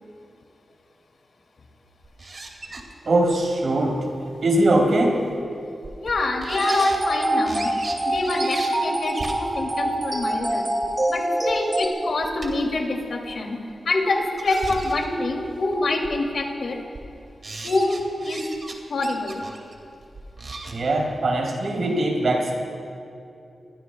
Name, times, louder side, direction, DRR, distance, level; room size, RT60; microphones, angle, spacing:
sound 1, 2.0-2.8 3.2-3.3 4.6-4.7 5.3-5.4 5.8-6.1 6.4-7.0 7.5-8.7 9.0-10.9 11.5-11.6 11.9-12.7 13.3-13.4 14.1-15.2 15.7-15.8 16.0-16.4 16.8-17.1 17.4-18.7 19.0-20.7, right 3 dB, 50° right, 2.4 m, -36 dB
voice 1, 3.0-4.1 4.4-5.2 20.7-22.5, right 1 dB, 70° right, -1 dB, 3.4 m, -21 dB
voice 2, 6.0-7.7 8.0-10.7 11.1-13.6 13.8-16.8 17.6-18.4 18.9-19.4, left 2 dB, 75° left, 1 dB, 2.7 m, -25 dB
sound 2, 6.6-11.9, right 1 dB, 25° right, 2.7 m, -25 dB
29.0 x 21.5 x 2.3 m, 2.7 s
wide cardioid pair, 95°, 0 cm